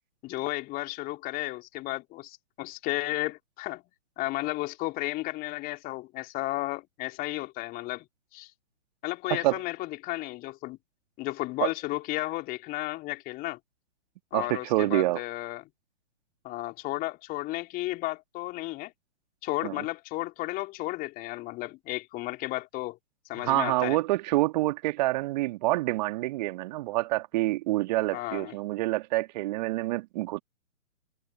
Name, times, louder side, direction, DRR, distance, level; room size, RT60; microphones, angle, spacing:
voice 1, 0.2-3.8 4.2-8.0 8.3-8.5 9.0-10.8 11.2-13.6 14.3-15.6 16.4-18.9 19.4-23.0 23.3-24.0 28.1-28.6, left 19 dB, 20° left, 3.4 m, -33 dB
voice 2, 14.3-15.2 19.6-19.8 23.4-30.4, right 18 dB, 35° right, 2.5 m, -27 dB
figure-of-eight pair, 125°, 39 cm